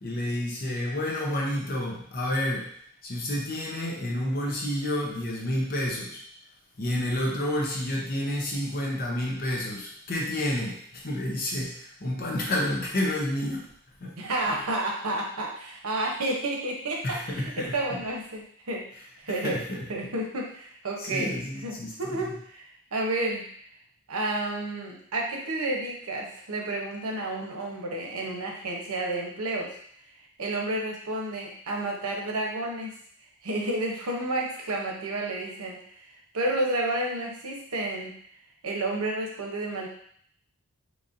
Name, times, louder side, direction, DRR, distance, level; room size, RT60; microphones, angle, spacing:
voice 1, 0.0-2.7 3.0-6.2 6.8-13.7 14.0-14.1 17.0-18.0 19.3-19.9 21.0-22.4, left 1 dB, 45° left, -2 dB, 0.7 m, -30 dB
voice 2, 14.2-18.8 19.2-19.6 19.9-22.6 22.9-23.4 24.1-29.7 30.4-32.9 33.4-35.8 36.3-38.2 38.6-39.9, right 2 dB, 90° right, 0 dB, 0.8 m, -30 dB
3.9 x 3.2 x 2.6 m, 0.62 s
head